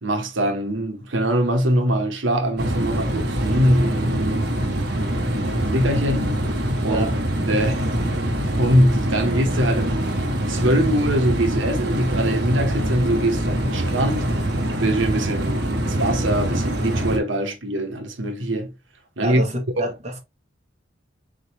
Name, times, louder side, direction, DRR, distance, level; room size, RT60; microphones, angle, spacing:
voice 1, 0.0-4.5 4.9-6.3 6.8-7.0 7.5-8.2 8.6-14.3 14.8-18.7 19.2-19.4 19.8-19.9, right 1 dB, 80° right, 1.0 m, -23 dB
sound 1, 2.6-17.2, right 1 dB, 55° right, 1.1 m, -24 dB
voice 2, 6.9-7.2 19.2-20.2, right 1 dB, 35° right, 1.3 m, -27 dB
4.0 x 3.8 x 3.0 m
head